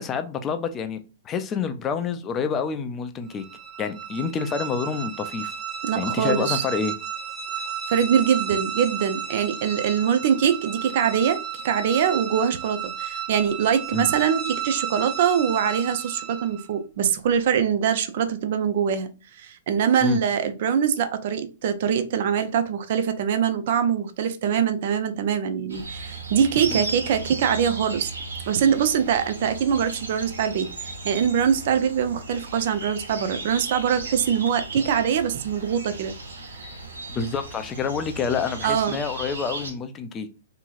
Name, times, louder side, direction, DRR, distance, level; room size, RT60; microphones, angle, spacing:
voice 1, 0.0-3.4 3.8-5.5 5.9-6.9 13.9-14.1 20.0-20.2 26.7-26.8 37.1-40.3, left 6 dB, 25° left, 0.4 m, -28 dB
sound 1, 3.3-16.7, right 8 dB, 30° right, 0.8 m, -33 dB
voice 2, 5.8-6.6 7.9-28.1 28.5-36.1 38.6-38.9, right 8 dB, 55° right, 0.4 m, -23 dB
sound 2, 25.7-39.7, right 3 dB, 80° right, 0.9 m, -36 dB
2.9 x 2.7 x 2.4 m
hypercardioid pair, 120°, 0 cm